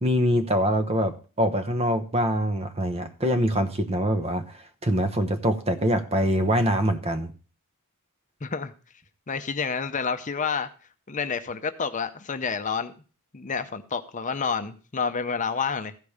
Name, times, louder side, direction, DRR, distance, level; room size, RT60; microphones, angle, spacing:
voice 1, 0.0-7.3, equal, 25° right, 9 dB, 1.0 m, -24 dB
voice 2, 8.4-8.7 9.3-10.7 11.1-12.9 13.3-15.9, left 5 dB, 35° left, 9 dB, 0.7 m, -29 dB
14.5 x 5.3 x 6.5 m, 0.37 s
head